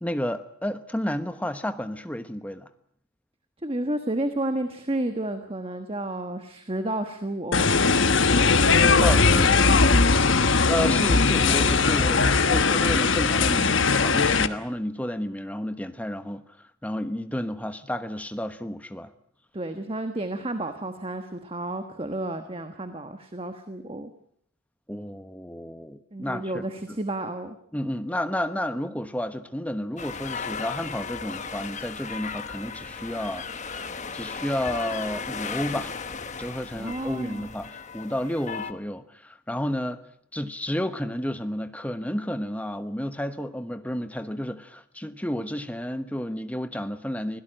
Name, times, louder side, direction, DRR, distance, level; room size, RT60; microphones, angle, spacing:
voice 1, 0.0-2.7 8.8-9.8 10.7-19.1 24.9-26.6 27.7-33.5 34.1-36.0 36.4-40.0 40.3-47.4, equal, 5° left, 9 dB, 1.0 m, -31 dB
voice 2, 3.6-8.1 8.4-9.8 10.8-10.9 19.5-24.1 26.1-27.6 36.8-37.5, right 1 dB, 25° right, 8 dB, 1.3 m, -32 dB
sound 1, 7.5-14.5, left 4 dB, 60° left, 1.2 m, -19 dB
sound 2, 30.0-38.7, left 5 dB, 35° left, 1.1 m, -36 dB
25.0 x 17.0 x 9.0 m, 0.68 s
head